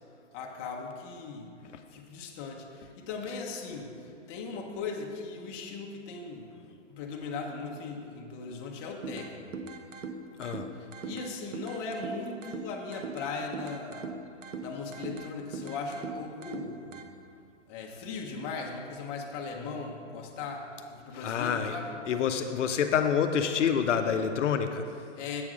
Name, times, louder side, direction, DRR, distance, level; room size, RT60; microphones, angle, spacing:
voice 1, 0.3-1.6 1.9-6.5 6.9-9.5 10.7-14.1 14.6-16.9 17.7-22.0 24.9-25.4, left 4 dB, 25° left, 0 dB, 0.7 m, -38 dB
sound 1, 9.0-17.0, right 4 dB, 90° right, 0.7 m, -41 dB
voice 2, 21.1-21.7 22.1-24.8, left 7 dB, 70° left, 6 dB, 0.6 m, -27 dB
7.7 x 3.5 x 6.1 m, 2.5 s
hypercardioid pair, 135°, 37 cm